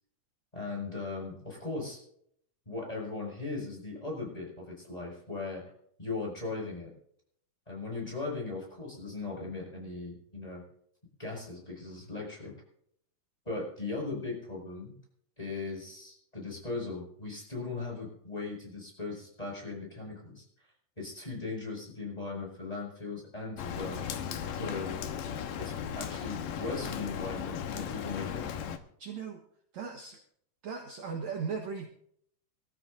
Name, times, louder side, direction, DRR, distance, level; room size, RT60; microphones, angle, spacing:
voice 1, 0.5-2.0 2.7-5.6 6.0-6.9 7.7-10.6 11.2-12.5 13.4-14.9 15.4-20.4 21.0-24.0 24.5-25.0 25.6-28.5, left 3 dB, 10° left, -2 dB, 6.3 m, -38 dB
Rain, 23.6-28.8, left 8 dB, 75° left, 2.7 m, -36 dB
voice 2, 29.0-29.4 29.7-30.2 30.6-31.9, right 5 dB, 60° right, 1 dB, 2.3 m, -37 dB
25.5 x 14.0 x 2.7 m, 0.67 s
omnidirectional pair, 4.1 m